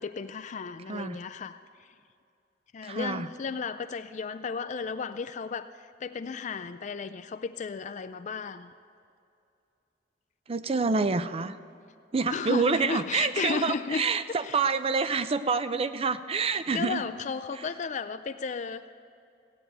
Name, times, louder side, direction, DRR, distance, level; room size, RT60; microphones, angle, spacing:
voice 1, 0.0-1.6 2.7-5.7 6.0-8.7 12.3-14.0 14.4-14.6 16.5-18.9, left 5 dB, 45° left, 10 dB, 0.4 m, -34 dB
voice 2, 2.8-3.3 10.5-11.6 12.1-17.0 17.6-17.7, right 4 dB, 35° right, 12 dB, 0.5 m, -27 dB
16.5 x 8.9 x 8.0 m, 2.5 s
head